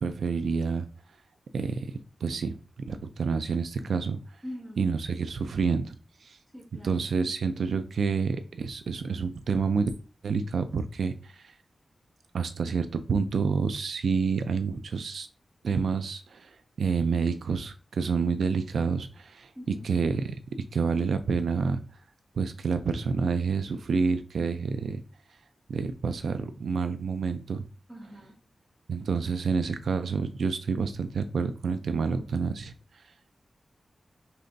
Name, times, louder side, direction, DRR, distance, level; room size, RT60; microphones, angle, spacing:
voice 1, 0.0-0.9 1.5-1.9 2.2-4.2 4.8-6.0 6.2-6.4 6.8-9.9 10.2-11.5 12.3-15.3 15.6-20.4 20.7-21.8 22.3-25.0 25.7-27.6 28.9-33.0, right 5 dB, 85° right, 9 dB, 0.4 m, -28 dB
voice 2, 4.4-4.9 6.5-7.0 19.5-19.9 27.9-28.3, equal, 10° right, -4 dB, 1.7 m, -42 dB
5.4 x 3.3 x 2.6 m, 0.34 s
wide cardioid pair, 175°, 0 cm